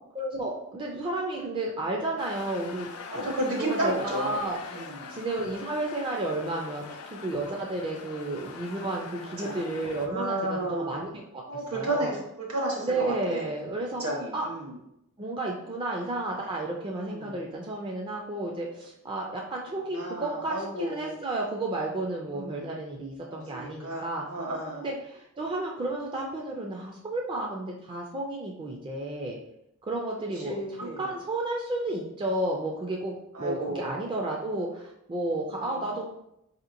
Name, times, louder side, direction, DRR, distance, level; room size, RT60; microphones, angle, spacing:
voice 1, 0.1-2.9 3.1-3.3 3.6-4.6 5.1-6.8 7.1-12.1 12.8-14.0 14.3-14.5 15.2-24.3 24.7-29.4 29.8-36.1, right 2 dB, 20° right, -1 dB, 0.3 m, -32 dB
sound 1, 2.2-10.1, left 5 dB, 80° left, 0.4 m, -43 dB
voice 2, 3.1-4.3 4.7-5.1 9.4-9.6 10.1-11.1 11.5-13.5 13.9-14.7 16.9-17.3 19.9-21.1 22.3-22.6 23.5-24.8 30.4-31.1 33.3-33.9 35.6-35.7, right 1 dB, 70° right, -2 dB, 1.1 m, -32 dB
4.7 x 2.8 x 2.5 m, 0.81 s
head